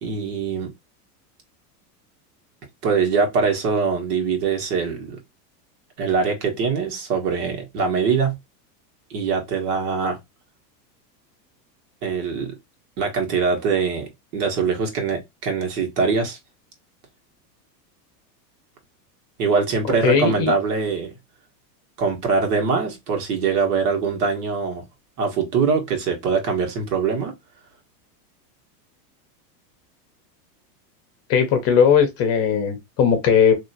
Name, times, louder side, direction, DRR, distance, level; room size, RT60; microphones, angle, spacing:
voice 1, 0.0-0.7 2.8-5.2 6.0-8.4 9.1-10.2 12.0-12.5 13.0-16.4 19.4-21.1 22.0-24.8 25.2-27.3, right 5 dB, 65° right, 1.7 m, -23 dB
voice 2, 20.0-20.5 31.3-33.5, left 7 dB, 30° left, 0.8 m, -18 dB
3.0 x 2.8 x 2.7 m
supercardioid pair, 155°, 49 cm